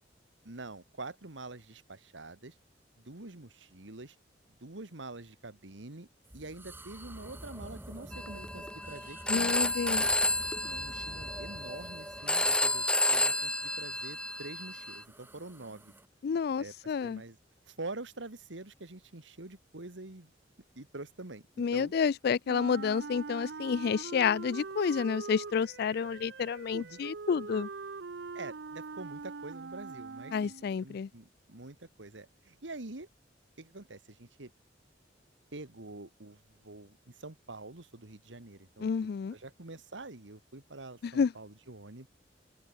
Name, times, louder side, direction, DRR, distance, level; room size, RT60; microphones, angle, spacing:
voice 1, 0.4-2.5 3.0-4.2 4.6-6.1 6.3-10.2 10.6-15.9 16.6-16.7 17.0-17.4 17.7-20.3 20.8-21.9 26.7-27.0 28.3-30.5 30.8-33.1 33.6-34.5 35.5-38.9 39.3-42.1, right 2 dB, 90° right, 2.0 m, -46 dB
sound 1, 6.2-16.1, right 1 dB, 10° right, 1.8 m, -48 dB
Telephone, 8.1-15.0, left 2 dB, 5° left, 1.3 m, -31 dB
voice 2, 9.3-10.0 16.2-17.2 21.6-27.7 30.3-31.1 38.8-39.3 41.0-41.3, left 6 dB, 60° left, 0.3 m, -30 dB
Wind instrument woodwind instrument, 22.5-30.8, right 4 dB, 65° right, 0.6 m, -43 dB
head